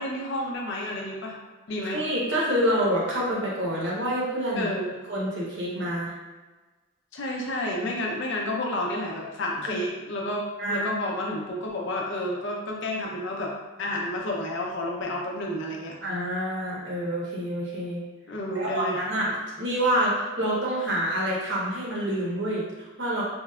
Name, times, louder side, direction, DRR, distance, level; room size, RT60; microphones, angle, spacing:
voice 1, 0.0-1.4 1.7-2.0 4.6-4.9 7.1-13.5 13.8-16.0 18.3-19.0, left 1 dB, 55° left, -1 dB, 0.5 m, -30 dB
voice 2, 1.8-4.7 5.1-6.1 7.8-7.9 9.7-9.8 10.6-10.9 16.0-18.0 18.5-23.2, equal, 55° right, -5 dB, 0.9 m, -27 dB
4.4 x 2.0 x 2.3 m, 1.2 s
head